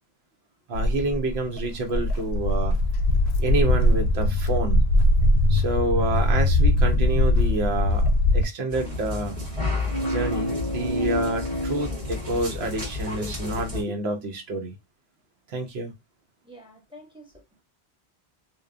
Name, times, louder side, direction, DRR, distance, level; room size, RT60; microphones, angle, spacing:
Walk footsteps, 0.7-8.4, left 1 dB, 80° left, 0.8 m, -21 dB
voice 1, 0.7-2.7 3.4-4.8 5.5-9.4 10.0-14.8 15.5-15.9, right 2 dB, 75° right, 1.0 m, -28 dB
sound 1, 8.7-13.8, left 1 dB, 35° right, 1.3 m, -29 dB
voice 2, 16.4-17.6, equal, 5° right, 0.7 m, -48 dB
2.9 x 2.2 x 2.4 m
omnidirectional pair, 1.1 m